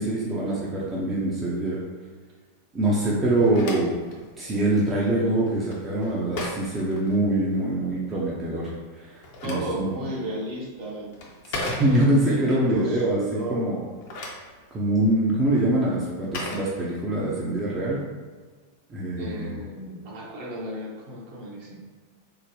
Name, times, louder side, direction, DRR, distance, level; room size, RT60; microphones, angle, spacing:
voice 1, 0.0-1.8 2.7-4.0 4.4-8.7 9.0-9.1 9.4-9.9 11.5-13.8 14.7-18.0 18.9-19.6, right 1 dB, 20° right, -5 dB, 0.6 m, -24 dB
Telephone, 3.2-7.7 8.9-12.4 13.8-17.4, left 2 dB, 50° left, 0.7 m, -38 dB
voice 2, 9.4-11.2 11.8-13.7 19.2-21.9, right 1 dB, 45° right, -3 dB, 0.9 m, -33 dB
3.7 x 2.1 x 3.1 m, 1.5 s
figure-of-eight pair, 90°, 0 cm